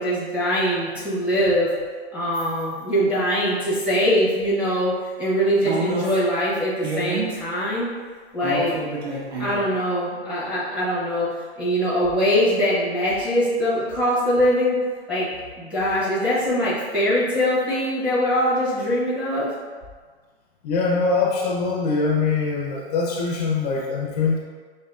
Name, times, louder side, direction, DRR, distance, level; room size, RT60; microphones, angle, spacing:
voice 1, 0.0-1.7 2.1-7.9 8.3-8.8 9.4-14.8 15.1-15.3 15.6-19.5, equal, 5° right, -10 dB, 0.7 m, -22 dB
sound 1, 2.3-2.6 3.7-3.9 5.6-6.2 6.8-7.4 8.4-9.6, right 2 dB, 70° right, 1.1 m, -28 dB
voice 2, 20.6-24.4, left 4 dB, 40° left, -2 dB, 0.5 m, -23 dB
5.3 x 2.8 x 2.3 m, 1.5 s
hypercardioid pair, 145°, 33 cm